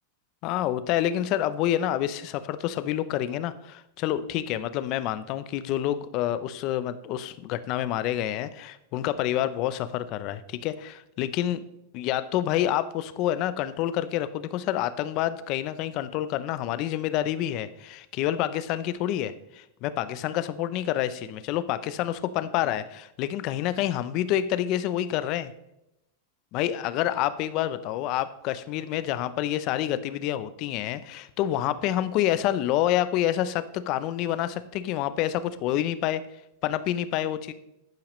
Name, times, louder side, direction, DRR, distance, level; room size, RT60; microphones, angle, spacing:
voice 1, 0.4-11.6 11.9-25.5 26.5-36.2 36.6-37.5, left 12 dB, 30° left, 14 dB, 0.5 m, -28 dB
10.5 x 10.0 x 3.1 m, 0.85 s
supercardioid pair, 180°, 0 cm